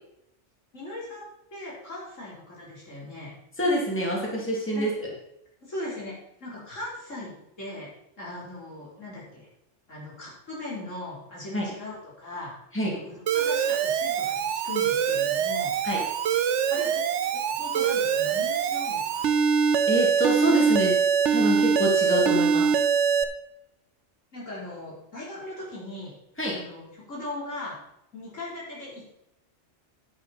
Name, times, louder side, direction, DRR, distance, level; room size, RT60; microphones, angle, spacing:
voice 1, 0.7-3.3 4.7-4.9 5.6-6.1 6.4-7.9 8.2-9.5 9.9-12.5 12.8-15.7 16.7-17.0 17.3-19.4 24.3-26.1 26.5-27.8 28.1-29.2, left 2 dB, 80° left, -6 dB, 4.5 m, -39 dB
voice 2, 3.6-4.9 11.5-11.7 12.7-12.9 15.8-16.0 19.9-21.0 21.3-22.7 26.4-26.6, right 1 dB, 10° left, -3 dB, 2.7 m, -26 dB
Alarm, 13.3-23.2, right 7 dB, 70° right, 1.0 m, -24 dB
10.5 x 9.3 x 4.3 m, 0.80 s
omnidirectional pair, 1.3 m